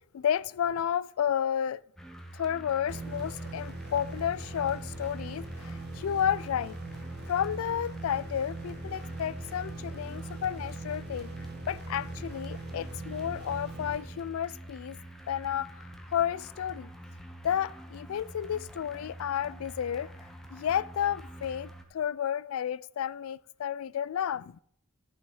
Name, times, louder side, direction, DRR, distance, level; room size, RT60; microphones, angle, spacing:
voice 1, 0.1-1.8 2.3-6.8 7.3-11.3 11.6-15.0 15.3-15.7 16.1-16.9 17.4-20.1 20.5-24.6, left 9 dB, 70° left, 0.3 m, -31 dB
sound 1, 2.0-21.8, right 1 dB, ahead, 1.0 m, -47 dB
sound 2, 2.9-14.6, right 2 dB, 50° right, 1.3 m, -41 dB
13.0 x 5.6 x 4.8 m
head